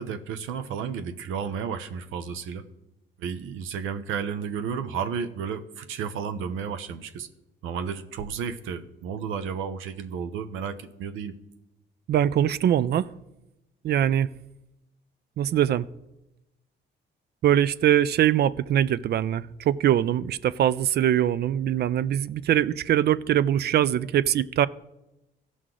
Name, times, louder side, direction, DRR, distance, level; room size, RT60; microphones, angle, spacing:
voice 1, 0.0-2.7 3.2-7.3 7.6-11.4, right 7 dB, 90° right, 9 dB, 0.7 m, -32 dB
voice 2, 12.1-13.1 13.8-14.3 15.4-15.9 17.4-24.7, right 11 dB, 55° right, 18 dB, 0.4 m, -22 dB
15.5 x 6.2 x 3.8 m, 0.93 s
cardioid pair, 90°, 20 cm